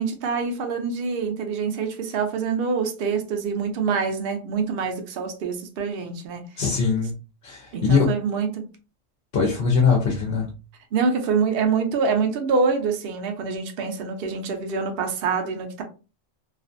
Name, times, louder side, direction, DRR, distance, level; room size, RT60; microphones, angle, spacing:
voice 1, 0.0-6.4 7.7-8.7 10.9-15.8, right 5 dB, 60° right, 0.7 m, -25 dB
voice 2, 6.6-7.1 7.4-8.1 9.3-10.5, left 5 dB, 60° left, 0.8 m, -21 dB
2.4 x 2.4 x 2.5 m
omnidirectional pair, 1.2 m